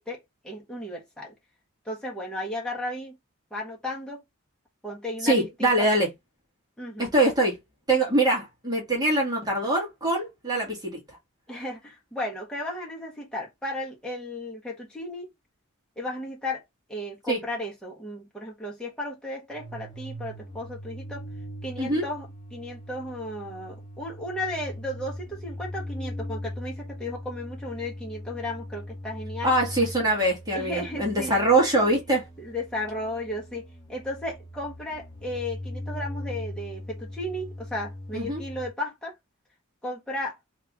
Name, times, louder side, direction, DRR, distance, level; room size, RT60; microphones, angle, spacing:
voice 1, 0.0-1.3 1.8-3.2 3.5-4.2 4.8-5.9 6.8-7.1 11.5-15.3 16.0-16.6 16.9-21.3 21.6-29.6 30.5-31.4 31.8-31.9 32.4-33.6 33.9-39.1 39.8-40.4, left 1 dB, 5° left, 1.5 m, -34 dB
voice 2, 5.2-6.1 7.0-7.6 7.9-11.0 17.3-17.4 21.8-22.0 29.4-32.2 38.1-38.4, right 1 dB, 20° right, 1.6 m, -23 dB
sound 1, 19.5-38.7, left 1 dB, 20° left, 1.4 m, -40 dB
3.4 x 2.9 x 3.6 m
head